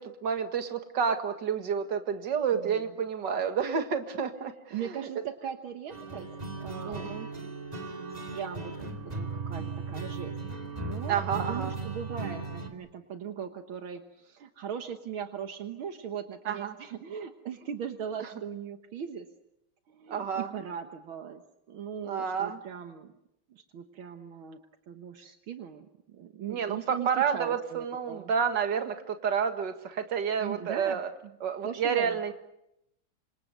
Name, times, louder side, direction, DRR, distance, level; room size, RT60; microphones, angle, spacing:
voice 1, 0.2-5.1 6.8-7.3 11.1-11.8 16.5-16.7 18.2-18.3 20.1-20.5 22.0-22.6 26.5-31.1 31.4-32.3, right 7 dB, 60° right, 7 dB, 2.4 m, -30 dB
voice 2, 4.7-6.3 6.6-7.2 8.0-10.3 10.8-19.3 19.9-21.4 21.7-23.1 23.5-24.6 24.9-28.3 30.4-31.0 31.6-32.2, right 8 dB, 75° right, 7 dB, 2.1 m, -39 dB
sound 1, 5.9-12.7, right 3 dB, 20° right, 2.5 m, -37 dB
27.5 x 26.5 x 6.7 m, 0.82 s
omnidirectional pair, 2.3 m